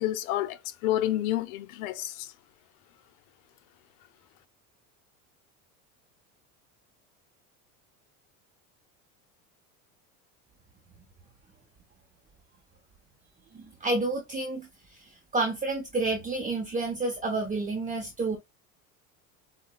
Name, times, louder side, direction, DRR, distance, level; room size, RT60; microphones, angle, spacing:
voice 1, 0.0-2.3, left 13 dB, 75° left, 0.6 m, -29 dB
voice 2, 13.5-15.0 15.3-18.4, right 2 dB, 20° right, 0.7 m, -30 dB
4.7 x 2.1 x 2.2 m
supercardioid pair, 100°, 42 cm